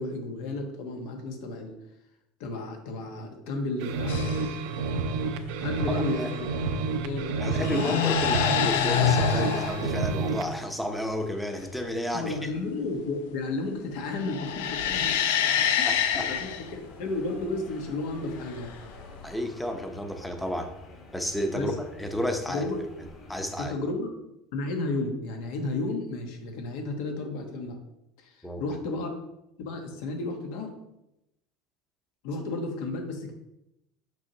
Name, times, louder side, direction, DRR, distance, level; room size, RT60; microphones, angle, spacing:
voice 1, 0.0-1.8 2.4-4.3 5.6-6.5 7.0-8.0 12.1-15.9 16.2-16.4 16.7-18.7 21.5-21.7 22.5-22.8 23.6-24.1 24.5-27.8 28.2-29.1 29.6-30.7 32.2-33.3, left 2 dB, 70° left, 3 dB, 1.2 m, -33 dB
sound 1, 3.8-10.5, right 3 dB, 75° right, 0.6 m, -29 dB
sound 2, 4.1-4.5 6.1-6.4 7.5-9.9 14.1-16.7 18.6-19.3, left 9 dB, 85° left, 0.5 m, -26 dB
voice 2, 5.9-6.3 7.4-12.3 15.8-16.3 19.2-20.7 21.1-21.7 22.0-22.6 23.3-23.7 28.4-28.6, equal, 5° left, 5 dB, 0.7 m, -31 dB
sound 3, 16.0-23.4, left 2 dB, 40° left, 1.7 m, -49 dB
6.1 x 5.5 x 2.9 m, 0.87 s
supercardioid pair, 130°, 0 cm